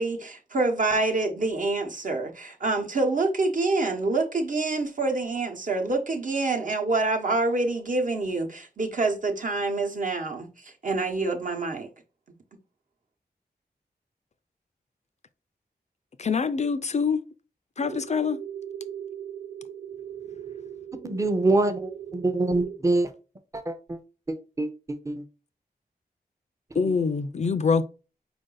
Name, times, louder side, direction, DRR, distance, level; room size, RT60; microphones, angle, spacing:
voice 1, 0.0-10.5 10.8-11.9, right 3 dB, 55° right, 1.0 m, -26 dB
voice 2, 16.2-17.2 17.8-18.4 26.7-27.8, left 5 dB, 45° left, 0.4 m, -25 dB
sound 1, 17.8-22.8, right 9 dB, 80° right, 0.5 m, -39 dB
voice 3, 20.9-23.1 23.5-24.0 24.3-25.2, right 2 dB, 20° right, 0.6 m, -26 dB
4.7 x 2.6 x 3.8 m
wide cardioid pair, 85°, 16 cm